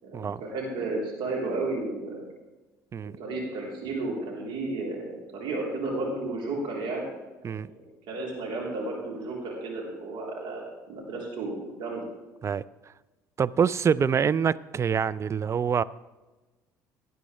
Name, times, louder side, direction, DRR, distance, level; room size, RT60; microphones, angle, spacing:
voice 1, 0.0-2.2 3.0-7.1 7.5-7.7 8.1-12.0, right 2 dB, 55° right, -2 dB, 3.8 m, -33 dB
voice 2, 13.4-15.8, right 7 dB, 30° right, 17 dB, 0.4 m, -25 dB
17.5 x 10.5 x 3.4 m, 1.2 s
figure-of-eight pair, 55°, 10 cm